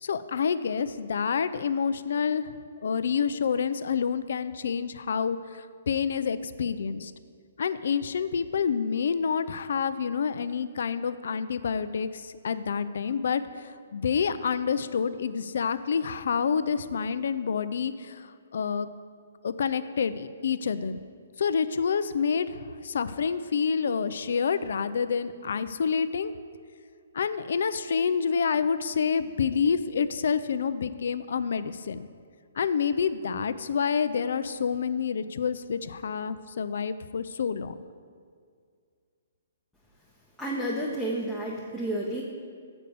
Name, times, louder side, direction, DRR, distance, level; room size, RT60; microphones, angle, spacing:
voice 1, 0.0-2.5 2.8-7.1 7.6-18.9 19.4-21.0 21.4-26.3 27.1-32.1 32.6-37.7, left 6 dB, 70° left, 13 dB, 0.3 m, -28 dB
voice 2, 40.4-42.2, right 1 dB, 5° left, -6 dB, 0.7 m, -30 dB
6.7 x 5.2 x 6.8 m, 2.1 s
hypercardioid pair, 160°, 0 cm